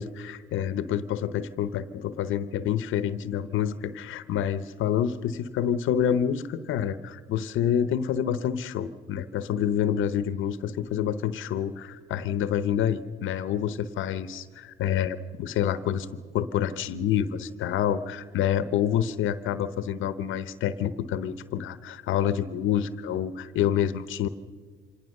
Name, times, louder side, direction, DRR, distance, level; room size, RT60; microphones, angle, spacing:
voice 1, 0.0-16.1 16.3-24.3, left 9 dB, 85° left, 14 dB, 0.9 m, -27 dB
25.5 x 18.5 x 6.6 m, 1.5 s
cardioid pair, 90°, 20 cm